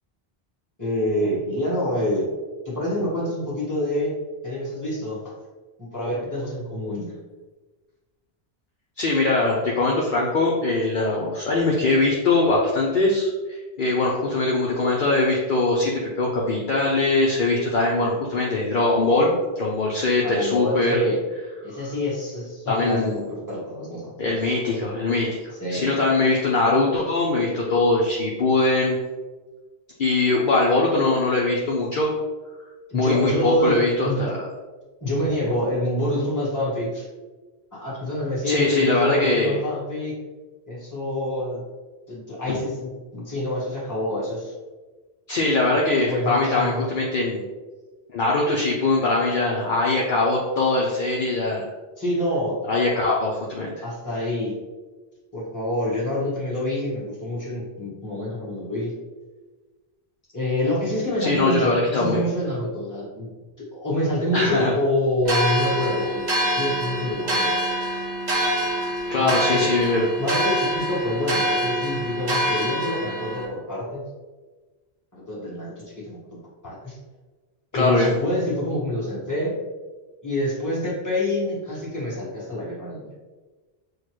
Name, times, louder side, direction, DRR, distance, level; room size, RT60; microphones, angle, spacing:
voice 1, 0.8-2.3 2.6-4.1 4.4-5.3 5.8-7.1 20.2-21.2 21.6-24.1 25.6-25.9 32.9-33.8 34.0-34.2 35.0-37.1 37.7-40.1 40.7-41.6 42.1-44.5 46.1-46.9 52.0-52.6 53.8-54.5 55.3-58.9 60.3-63.3 63.6-66.2 66.6-67.5 69.2-69.7 70.2-74.0 75.3-76.2 76.6-77.0 77.7-79.5 80.2-83.1, left 1 dB, 20° left, -7 dB, 1.4 m, -26 dB
voice 2, 9.0-21.0 22.7-23.2 24.2-29.0 30.0-32.1 32.9-34.4 38.4-39.6 45.3-47.4 48.1-51.6 52.7-53.7 61.2-62.2 64.3-64.7 69.1-70.0 77.7-78.1, left 2 dB, 60° left, -3 dB, 0.7 m, -22 dB
sound 1, 65.2-73.4, right 1 dB, 45° right, 1.0 m, -25 dB
6.4 x 2.2 x 3.0 m, 1.3 s
omnidirectional pair, 1.0 m